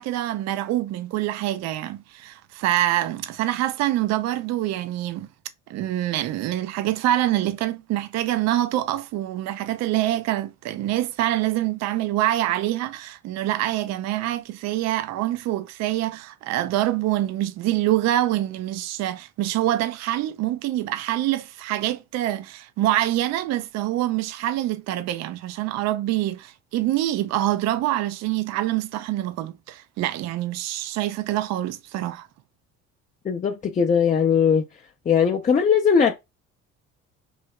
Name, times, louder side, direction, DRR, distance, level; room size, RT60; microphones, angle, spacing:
voice 1, 0.0-5.3 5.7-32.3, right 14 dB, 60° right, 0.4 m, -25 dB
voice 2, 33.3-34.7 35.1-36.1, left 7 dB, 25° left, 0.4 m, -19 dB
3.2 x 2.7 x 2.2 m
supercardioid pair, 80°, 31 cm